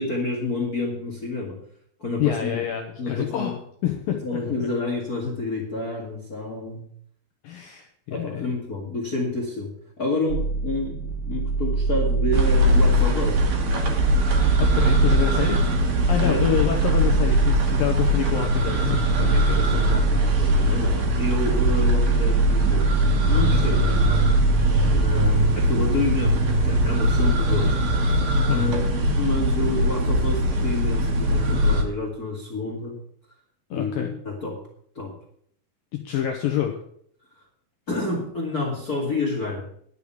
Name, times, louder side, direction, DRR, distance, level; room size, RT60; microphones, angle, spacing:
voice 1, 0.0-1.6 2.0-2.6 3.0-3.5 4.2-6.8 8.1-13.4 16.2-16.4 20.4-24.6 24.9-27.7 28.5-33.0 33.7-34.6 34.9-35.1 37.9-39.7, left 2 dB, 50° left, 0 dB, 1.1 m, -29 dB
voice 2, 2.2-3.6 3.8-4.7 7.4-8.6 14.6-15.8 16.1-20.3 20.6-20.7 23.8-24.0 24.6-25.0 28.5-28.8 33.7-34.2 35.9-36.8, left 10 dB, 75° left, 3 dB, 2.1 m, -28 dB
sound 1, 10.3-25.1, right 3 dB, 80° right, 2.7 m, -24 dB
sound 2, 12.3-31.8, equal, 50° right, 2.3 m, -22 dB
11.0 x 6.8 x 8.4 m, 0.65 s
omnidirectional pair, 5.4 m